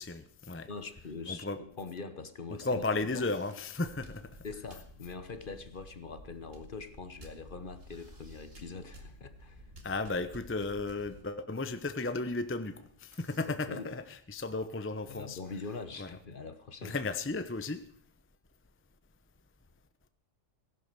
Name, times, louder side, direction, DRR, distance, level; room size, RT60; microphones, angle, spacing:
voice 1, 0.0-0.7 1.3-1.6 2.6-4.3 9.8-15.4 16.0-16.1 16.8-17.8, left 3 dB, 10° left, 0.7 m, -34 dB
voice 2, 0.7-2.8 3.1-3.3 4.4-9.7 13.5-13.9 15.1-17.0, left 4 dB, 45° left, 1.1 m, -43 dB
sound 1, 3.2-3.8 4.2-4.3 5.1-5.9 6.3-6.4 6.7-6.9 7.3-8.6 10.6-10.7 11.2-11.3 11.6-11.7 12.0-12.1 12.4-13.6 14.6-14.9 15.5-16.1, right 1 dB, 20° right, 3.3 m, -66 dB
sound 2, 3.9-11.2, equal, 50° right, 2.4 m, -52 dB
16.5 x 11.0 x 6.8 m
omnidirectional pair, 1.3 m